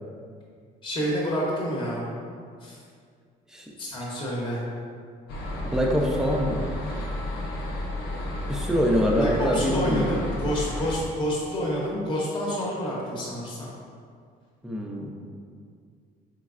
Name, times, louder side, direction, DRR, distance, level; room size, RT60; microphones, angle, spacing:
voice 1, 0.8-2.1 2.6-2.8 3.8-4.6 9.1-13.7, equal, 30° left, -4 dB, 0.8 m, -28 dB
sound 1, 5.3-11.0, left 1 dB, 85° left, 0.7 m, -32 dB
voice 2, 5.6-6.6 8.5-10.3 14.6-15.1, equal, 5° right, -1 dB, 0.5 m, -25 dB
3.9 x 3.1 x 2.4 m, 2.2 s
cardioid pair, 110°, 17 cm